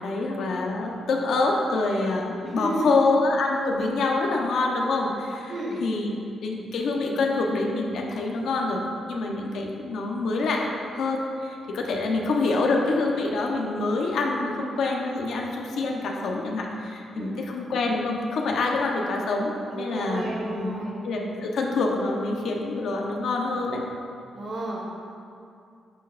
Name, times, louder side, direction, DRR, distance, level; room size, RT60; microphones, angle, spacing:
voice 1, 0.0-5.5 5.8-6.1 6.4-8.8 9.1-10.7 10.9-23.8, left 3 dB, 65° left, 0 dB, 0.9 m, -26 dB
voice 2, 2.4-3.0 5.5-5.8 17.1-17.3 19.7-21.0 24.3-24.8, right 1 dB, 40° right, -4 dB, 1.6 m, -31 dB
10.0 x 6.3 x 2.5 m, 2.4 s
wide cardioid pair, 165°, 0 cm